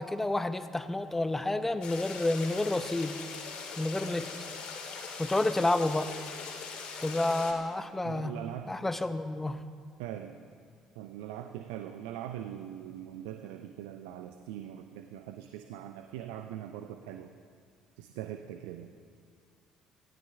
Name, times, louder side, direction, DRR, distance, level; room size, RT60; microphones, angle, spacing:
voice 1, 0.0-3.2 3.8-4.3 5.2-6.1 7.0-8.3 8.7-9.6, left 2 dB, 15° left, 11 dB, 0.8 m, -29 dB
sound 1, 1.8-7.5, left 5 dB, 55° left, 2.4 m, -41 dB
voice 2, 8.0-8.8 10.0-10.4 11.0-17.3 18.0-18.9, right 11 dB, 70° right, 7 dB, 0.6 m, -41 dB
18.0 x 16.0 x 3.5 m, 2.1 s
figure-of-eight pair, 50°, 2 cm